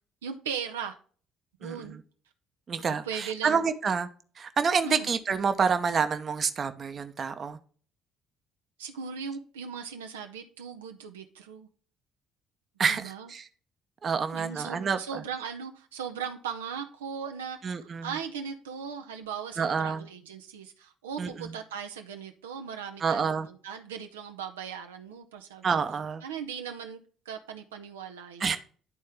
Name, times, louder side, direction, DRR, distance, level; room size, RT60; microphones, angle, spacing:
voice 1, 0.2-1.0 1.6-2.0 3.0-3.6 4.8-5.1 8.8-11.7 12.9-13.3 14.3-25.8 26.2-27.0 27.3-28.6, right 7 dB, 80° right, 0.6 m, -38 dB
voice 2, 1.6-2.0 2.7-4.1 4.4-7.6 12.8-13.5 14.0-15.2 17.6-18.1 19.6-20.1 21.2-21.5 23.0-23.5 25.6-26.2 28.4-28.6, right 6 dB, 40° right, 0.8 m, -28 dB
11.0 x 4.2 x 3.5 m
figure-of-eight pair, 50°, 0 cm